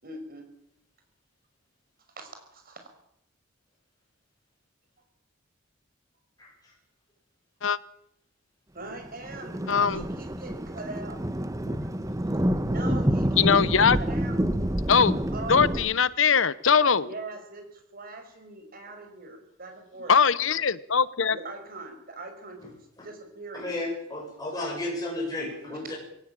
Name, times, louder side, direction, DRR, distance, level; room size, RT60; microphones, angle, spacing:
voice 1, 0.0-0.5 2.2-2.9 8.7-11.2 12.7-14.6 15.3-15.8 17.0-20.1 21.3-22.8 23.0-23.7 25.6-25.9, right 2 dB, 45° right, 5 dB, 5.9 m, -41 dB
Thunder, 9.0-15.9, equal, 15° right, 1.2 m, -28 dB
voice 2, 9.7-10.0 11.7-11.8 13.4-14.0 14.9-15.2 15.5-17.1 20.1-21.4, left 6 dB, 70° left, 18 dB, 0.9 m, -21 dB
voice 3, 23.6-25.9, left 2 dB, 20° left, -3 dB, 7.9 m, -33 dB
22.5 x 17.5 x 9.0 m, 0.76 s
head